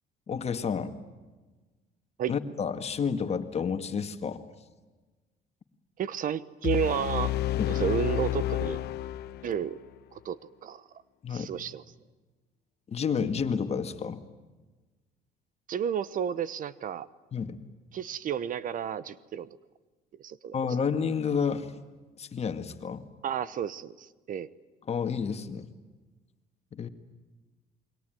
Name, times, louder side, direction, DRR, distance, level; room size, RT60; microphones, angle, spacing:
voice 1, 0.3-0.9 2.3-4.4 7.6-7.8 11.2-11.5 12.9-14.2 17.3-17.6 20.5-21.7 22.2-23.0 24.9-25.7 26.7-26.9, left 6 dB, 40° left, 8 dB, 2.1 m, -30 dB
voice 2, 6.0-7.4 7.7-8.8 9.4-9.8 10.1-10.8 11.3-11.8 15.7-17.1 17.9-19.5 20.2-20.6 23.2-24.5, right 9 dB, 55° right, 18 dB, 1.0 m, -31 dB
sound 1, 6.6-9.7, left 14 dB, 75° left, 1.0 m, -30 dB
28.5 x 22.0 x 9.3 m, 1.2 s
cardioid pair, 110°, 17 cm